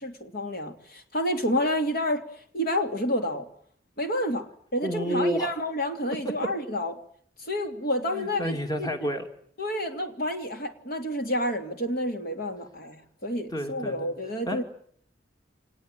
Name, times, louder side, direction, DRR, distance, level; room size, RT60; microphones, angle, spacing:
voice 1, 0.0-2.2 2.5-3.5 4.0-6.9 7.4-8.9 9.6-14.6, left 1 dB, 55° left, 6 dB, 2.8 m, -29 dB
voice 2, 4.8-5.5 8.1-9.3 13.5-14.0 14.5-14.6, equal, 20° left, 6 dB, 2.6 m, -29 dB
25.5 x 20.0 x 9.0 m, 0.62 s
head